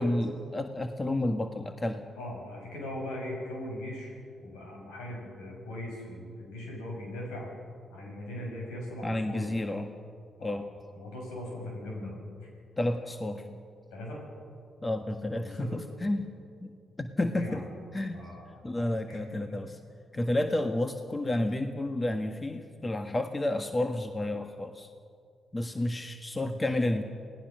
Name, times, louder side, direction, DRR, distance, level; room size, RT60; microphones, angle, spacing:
voice 1, 0.0-2.0 9.0-9.9 10.4-10.6 12.8-13.6 14.8-16.3 16.6-16.7 17.0-17.6 17.9-18.2 18.6-19.8 20.1-24.9 25.5-27.0, left 1 dB, 25° left, 6 dB, 1.6 m, -31 dB
voice 2, 2.1-7.5 7.9-9.6 10.4-10.6 10.9-12.5 13.9-14.2 15.3-15.8 17.3-17.7 18.1-18.6 19.1-19.4, left 1 dB, 80° left, -1 dB, 6.7 m, -39 dB
28.5 x 18.5 x 6.4 m, 2.3 s
hypercardioid pair, 40°, 0 cm